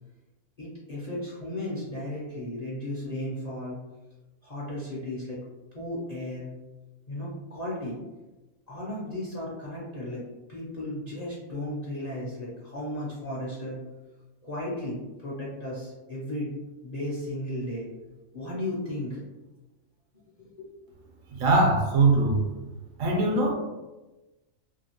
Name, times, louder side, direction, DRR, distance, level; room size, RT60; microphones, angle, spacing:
voice 1, 0.6-3.8 4.4-5.4 5.7-6.6 7.1-8.0 8.7-10.2 10.5-13.8 14.4-16.6 16.8-17.9 18.3-19.2 20.4-20.7, left 1 dB, 45° left, -6 dB, 0.5 m, -35 dB
voice 2, 21.3-22.4 23.0-23.5, right 2 dB, 75° right, 1 dB, 1.0 m, -21 dB
2.8 x 2.7 x 2.8 m, 1.1 s
omnidirectional pair, 1.4 m